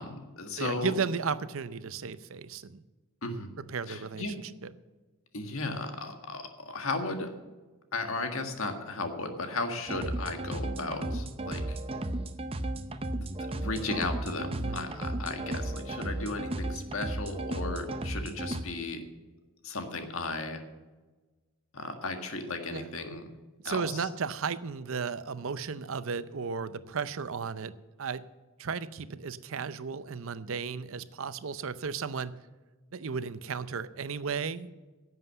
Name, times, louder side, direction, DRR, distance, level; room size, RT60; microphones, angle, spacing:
voice 1, 0.0-0.9 3.2-3.5 3.9-4.3 5.3-7.3 7.9-11.8 13.5-19.0 19.6-20.6 21.7-23.3 23.6-24.1, left 3 dB, 70° left, 5 dB, 1.7 m, -35 dB
voice 2, 0.5-2.8 3.6-4.3 4.6-4.7 14.5-14.9 22.7-22.9 23.6-27.7 28.0-28.2 28.6-32.3 32.9-34.7, right 5 dB, 65° right, 15 dB, 0.6 m, -34 dB
sound 1, 9.9-18.6, right 1 dB, 25° right, 0.6 m, -34 dB
11.0 x 7.7 x 7.8 m, 1.3 s
head